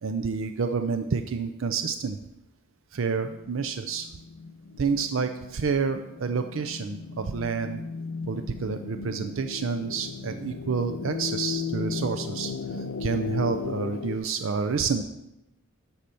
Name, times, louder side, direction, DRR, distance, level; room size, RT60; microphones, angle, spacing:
voice 1, 0.0-2.2 2.9-4.1 4.8-7.8 8.3-15.0, right 5 dB, 60° right, 8 dB, 0.5 m, -29 dB
sound 1, 3.3-14.2, left 5 dB, 60° left, 0.5 m, -36 dB
11.5 x 4.3 x 6.7 m, 0.90 s
head